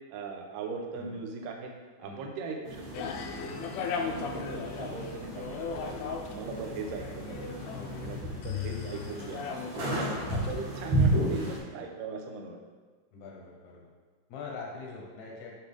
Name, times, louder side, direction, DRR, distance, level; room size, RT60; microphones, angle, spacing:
voice 1, 0.1-1.7 2.0-3.1 3.4-3.7 4.0-6.0 6.3-7.6 8.0-9.4 9.9-12.6, right 4 dB, 85° right, 2 dB, 1.9 m, -39 dB
sound 1, 2.6-11.6, right 1 dB, 45° right, 2.4 m, -33 dB
sound 2, 2.9-10.6, left 6 dB, 90° left, 2.2 m, -38 dB
voice 2, 7.7-8.2 11.3-11.7 13.1-13.9 14.3-15.6, left 4 dB, 70° left, -2 dB, 1.7 m, -44 dB
9.0 x 5.2 x 3.5 m, 1.4 s
omnidirectional pair, 5.0 m